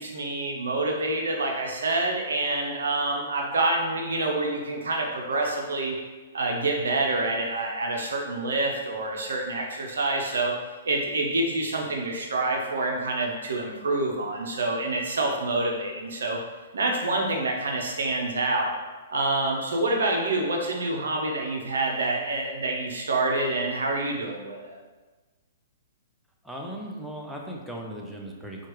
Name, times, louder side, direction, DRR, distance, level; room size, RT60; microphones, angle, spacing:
voice 1, 0.0-6.0 6.3-10.5 10.8-16.4 16.7-18.7 19.1-24.8, right 2 dB, 80° right, 0 dB, 0.6 m, -27 dB
voice 2, 26.4-28.7, right 1 dB, ahead, -1 dB, 0.5 m, -37 dB
4.3 x 2.4 x 3.0 m, 1.3 s
hypercardioid pair, 130°, 0 cm